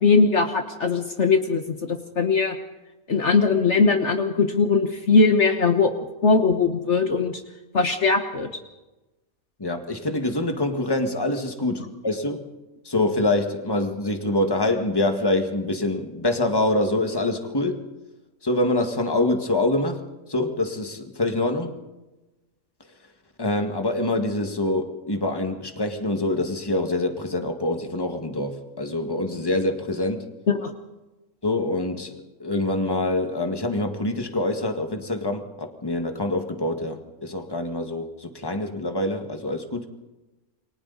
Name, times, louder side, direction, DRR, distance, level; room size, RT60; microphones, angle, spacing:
voice 1, 0.0-2.6 3.1-5.9 6.2-7.4 7.7-8.5 30.5-30.7, left 4 dB, 55° left, 5 dB, 1.5 m, -20 dB
voice 2, 9.6-12.5 12.9-17.9 18.4-21.8 23.4-30.2 31.4-39.9, left 2 dB, 15° left, 5 dB, 1.9 m, -25 dB
29.0 x 23.5 x 4.1 m, 1.1 s
omnidirectional pair, 1.5 m